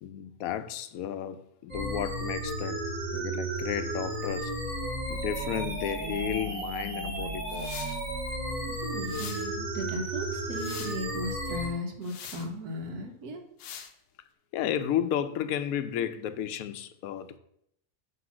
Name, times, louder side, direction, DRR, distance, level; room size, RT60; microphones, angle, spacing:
voice 1, 0.0-2.8 3.1-4.5 5.1-7.7 14.5-17.4, left 9 dB, 70° left, 1.0 m, -33 dB
sound 1, 1.7-11.7, right 1 dB, 45° right, 2.5 m, -33 dB
sound 2, 7.5-8.0 9.0-9.5 10.2-11.0 12.0-12.5 13.6-13.9, left 8 dB, 90° left, 1.2 m, -43 dB
voice 2, 8.7-13.4, left 1 dB, 80° right, 1.6 m, -37 dB
8.1 x 2.9 x 6.0 m
omnidirectional pair, 1.6 m